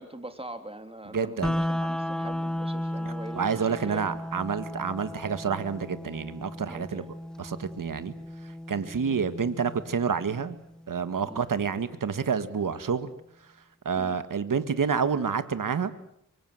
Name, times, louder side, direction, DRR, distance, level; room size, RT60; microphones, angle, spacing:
voice 1, 0.0-4.5 6.7-7.1 9.0-9.2 11.2-11.4 13.9-14.2, right 1 dB, 15° right, 7 dB, 3.4 m, -43 dB
voice 2, 1.1-1.6 3.1-7.1 7.4-8.1 8.7-10.6 10.9-13.1 13.9-15.9, right 6 dB, 80° right, 11 dB, 1.8 m, -28 dB
sound 1, 1.4-11.4, left 1 dB, ahead, 1.1 m, -35 dB
25.5 x 24.0 x 7.8 m, 0.75 s
wide cardioid pair, 70°, 32 cm